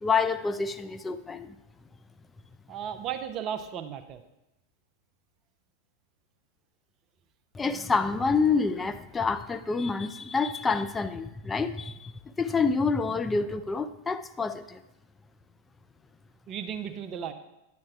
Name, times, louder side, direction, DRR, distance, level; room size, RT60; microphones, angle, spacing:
voice 1, 0.0-1.6 7.5-12.1 12.4-14.8, left 4 dB, 15° left, 10 dB, 0.4 m, -27 dB
voice 2, 2.7-4.2 16.5-17.3, right 8 dB, 35° right, 9 dB, 0.6 m, -35 dB
9.9 x 8.4 x 2.4 m, 0.92 s
figure-of-eight pair, 90°, 0 cm